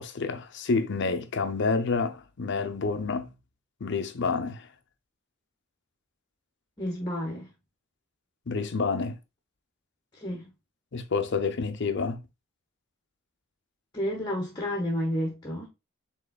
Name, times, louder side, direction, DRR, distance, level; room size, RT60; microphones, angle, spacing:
voice 1, 0.0-3.3 3.8-4.7 8.5-9.2 10.9-12.2, left 4 dB, 60° left, 0.7 m, -28 dB
voice 2, 6.8-7.5 10.1-10.5 13.9-15.7, equal, 20° left, 1.1 m, -31 dB
5.3 x 3.7 x 2.3 m
head